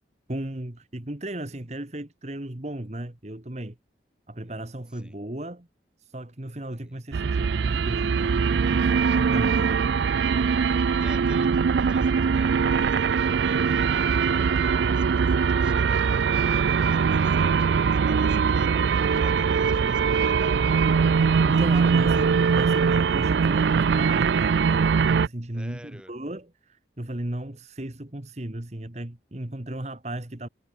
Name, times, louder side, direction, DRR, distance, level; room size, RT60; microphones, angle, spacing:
voice 1, 0.3-3.8 4.3-5.7 6.0-9.8 21.4-30.5, right 1 dB, 40° right, 1.6 m, -35 dB
voice 2, 6.7-7.0 11.0-20.8 21.3-21.6 21.8-21.9 25.5-26.1, equal, 5° right, 5.5 m, -49 dB
sound 1, 7.1-25.3, right 6 dB, 75° right, 0.4 m, -22 dB
head